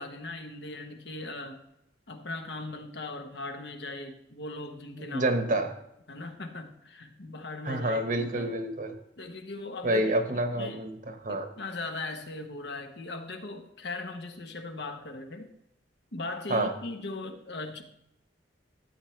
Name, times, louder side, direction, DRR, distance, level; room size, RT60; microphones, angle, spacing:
voice 1, 0.0-1.6 2.1-5.3 5.6-5.7 6.1-8.5 9.2-10.1 10.5-10.8 11.3-15.5 16.1-17.8, left 2 dB, 65° left, 5 dB, 1.2 m, -39 dB
voice 2, 4.9-5.7 7.6-8.9 9.8-11.5 16.5-16.7, right 1 dB, 45° right, 6 dB, 1.2 m, -28 dB
13.5 x 8.5 x 3.3 m, 0.81 s
head